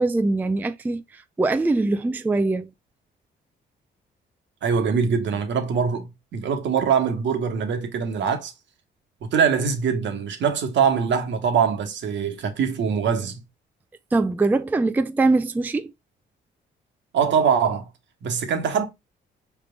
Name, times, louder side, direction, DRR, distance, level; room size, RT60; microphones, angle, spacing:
voice 1, 0.0-2.7 14.1-15.9, right 3 dB, 10° right, 0.3 m, -22 dB
voice 2, 4.6-8.5 9.2-13.4 17.1-17.9 18.2-18.9, right 6 dB, 70° right, 1.2 m, -23 dB
5.0 x 3.5 x 2.2 m
cardioid pair, 90°, 20 cm